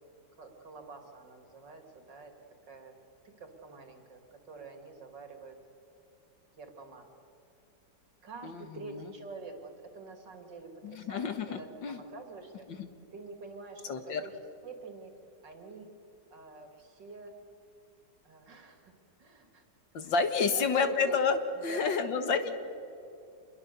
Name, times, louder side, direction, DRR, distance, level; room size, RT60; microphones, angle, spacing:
voice 1, 0.4-2.3 2.7-3.0 3.2-5.6 6.6-7.2 8.2-12.7 13.1-14.4 14.6-15.1 15.4-15.9 16.3-17.3 18.2-18.9 19.2-19.6 20.0-20.2 20.5-21.2 21.5-22.1 22.4-22.5, right 3 dB, 75° right, 4 dB, 3.4 m, -47 dB
voice 2, 8.4-9.1 10.8-12.0 12.7-12.9 13.9-14.2 19.9-22.5, left 5 dB, 90° left, 8 dB, 2.3 m, -30 dB
27.0 x 21.5 x 7.0 m, 2.6 s
omnidirectional pair, 2.0 m